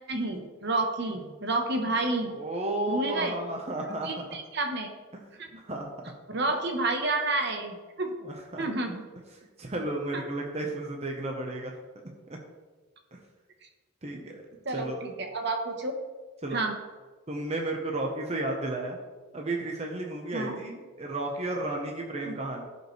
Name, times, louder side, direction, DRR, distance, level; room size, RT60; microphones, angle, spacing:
voice 1, 0.1-2.3 2.9-3.4 4.0-4.9 5.5-5.6 6.3-8.1 8.6-9.0 10.1-10.2 14.6-15.9 16.5-16.7 20.3-20.6 22.2-22.3, right 2 dB, 50° right, 4 dB, 1.1 m, -30 dB
voice 2, 2.3-4.2 5.6-6.1 8.2-8.6 9.6-11.7 13.1-13.2 14.0-14.4 14.7-15.0 16.4-16.6 17.3-19.0 19.3-22.7, right 2 dB, 30° right, 0 dB, 0.9 m, -33 dB
16.0 x 5.4 x 3.2 m, 1.3 s
head